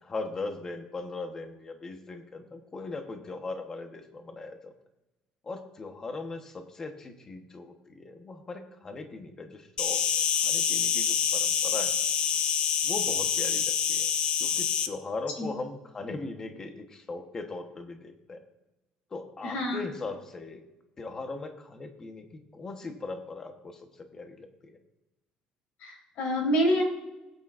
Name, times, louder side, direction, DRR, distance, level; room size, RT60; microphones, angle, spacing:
voice 1, 0.0-4.7 5.4-11.9 12.8-14.1 14.4-18.4 19.1-20.6 21.0-22.3 22.5-23.8 24.1-24.8, left 3 dB, 25° left, 5 dB, 1.2 m, -39 dB
Insect, 9.8-14.9, left 8 dB, 50° left, 0.7 m, -26 dB
voice 2, 19.4-19.8 25.8-26.8, equal, 70° left, -1 dB, 4.0 m, -27 dB
19.0 x 8.6 x 2.6 m, 1.0 s
cardioid pair, 160°, 2 cm